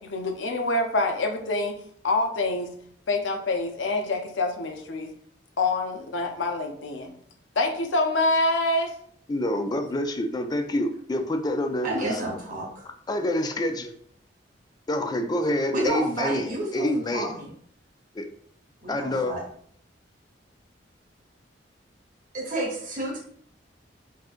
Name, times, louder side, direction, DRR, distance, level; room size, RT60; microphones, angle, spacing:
voice 1, 0.0-1.8 2.0-2.7 3.1-5.1 5.6-7.1 7.6-8.9, left 2 dB, 90° left, 5 dB, 0.6 m, -26 dB
voice 2, 9.3-12.2 13.1-13.9 14.9-17.3 18.1-18.3 18.9-19.3, left 1 dB, 20° left, 6 dB, 0.3 m, -27 dB
voice 3, 11.8-12.9 15.7-17.5 18.8-19.4 22.3-23.2, right 1 dB, 50° right, -4 dB, 0.9 m, -30 dB
3.6 x 2.7 x 2.4 m, 0.63 s
head